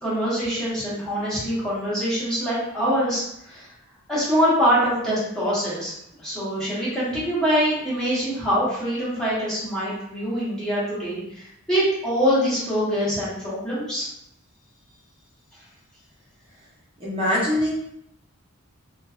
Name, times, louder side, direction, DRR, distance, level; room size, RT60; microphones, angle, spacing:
voice 1, 0.0-3.7 4.1-5.9 6.2-14.1, equal, 5° left, -11 dB, 1.0 m, -24 dB
voice 2, 17.0-17.7, left 1 dB, 25° right, -10 dB, 0.9 m, -22 dB
2.6 x 2.3 x 2.3 m, 0.75 s
head